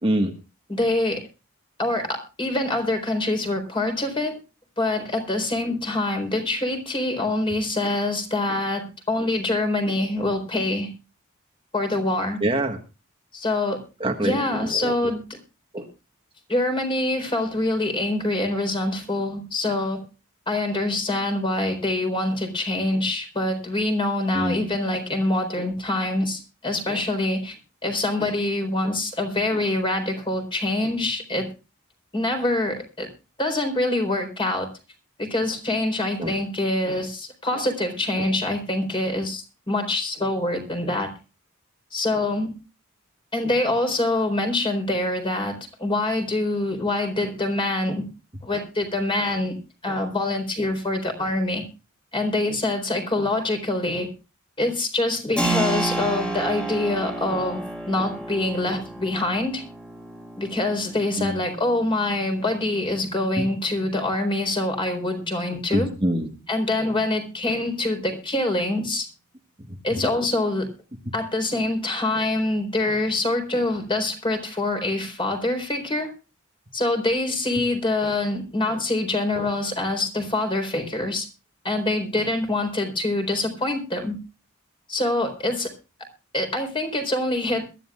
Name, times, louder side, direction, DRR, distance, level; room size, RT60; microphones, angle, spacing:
voice 1, 0.0-0.3 12.4-12.8 14.0-15.0 15.7-15.8 24.3-24.7 36.2-36.3 61.2-61.4 63.4-63.5 65.7-66.3 69.7-70.1, right 1 dB, 25° right, 3 dB, 1.5 m, -25 dB
voice 2, 0.7-1.2 1.8-4.4 4.8-10.9 11.7-12.4 13.3-13.8 14.2-15.4 16.5-20.0 20.5-27.6 27.8-31.5 32.1-33.1 33.4-34.7 35.2-41.1 41.9-42.5 43.3-48.1 48.4-49.5 49.8-51.6 52.1-54.1 54.6-59.6 60.4-65.9 66.5-69.1 69.8-70.7 71.1-76.1 76.7-81.3 81.6-84.2 84.9-85.7 86.3-87.6, left 2 dB, 25° left, 5 dB, 4.2 m, -25 dB
Keyboard (musical), 55.4-65.7, right 2 dB, 5° left, 2.7 m, -32 dB
22.0 x 13.5 x 2.4 m, 0.30 s
head